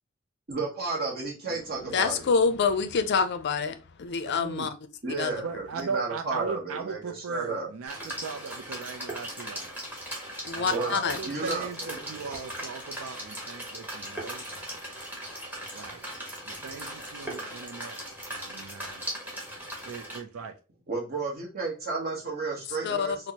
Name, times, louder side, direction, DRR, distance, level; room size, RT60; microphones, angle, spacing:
voice 1, 0.5-2.3 5.0-7.7 10.7-10.9 11.2-12.0 20.9-23.3, right 3 dB, 45° right, 0.9 m, -32 dB
voice 2, 1.8-4.7 5.2-5.3 10.4-11.2 22.8-23.3, left 5 dB, 55° left, 0.4 m, -27 dB
voice 3, 4.3-4.7 5.4-9.7 10.5-14.4 15.7-16.0 16.5-18.0 18.3-19.1 19.9-20.6, right 5 dB, 75° right, 0.4 m, -38 dB
sound 1, 7.9-20.2, equal, 10° right, 1.0 m, -38 dB
4.3 x 2.0 x 2.8 m
head